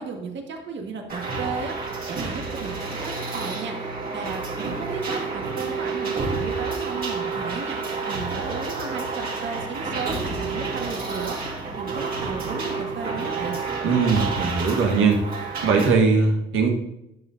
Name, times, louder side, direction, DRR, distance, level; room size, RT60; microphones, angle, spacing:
voice 1, 0.0-13.5, right 5 dB, 65° right, 2 dB, 1.6 m, -34 dB
sound 1, 1.1-15.9, right 4 dB, 45° right, 2.6 m, -30 dB
voice 2, 13.8-16.8, right 4 dB, 85° right, 2 dB, 1.4 m, -20 dB
10.5 x 7.0 x 2.7 m, 0.85 s
cardioid pair, 90°, 20 cm